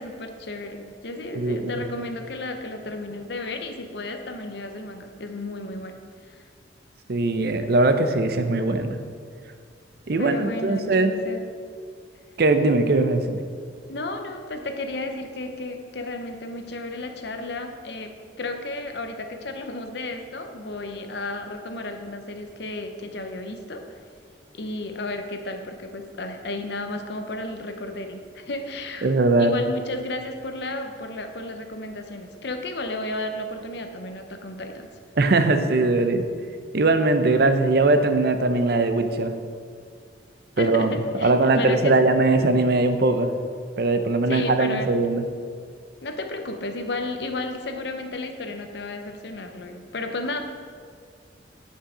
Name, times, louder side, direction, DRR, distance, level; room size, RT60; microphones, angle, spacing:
voice 1, 0.0-6.0 6.2-6.4 10.2-11.4 13.9-18.1 18.4-24.0 24.5-29.1 29.4-34.9 40.6-42.0 44.3-44.9 46.0-50.4, left 2 dB, 65° left, 5 dB, 0.7 m, -33 dB
voice 2, 7.1-9.0 10.1-11.1 12.4-13.4 29.0-29.5 35.2-36.2 36.7-39.3 40.6-40.9 41.2-43.3 43.8-45.2, right 2 dB, 55° right, 8 dB, 0.6 m, -20 dB
8.6 x 5.6 x 5.0 m, 2.1 s
head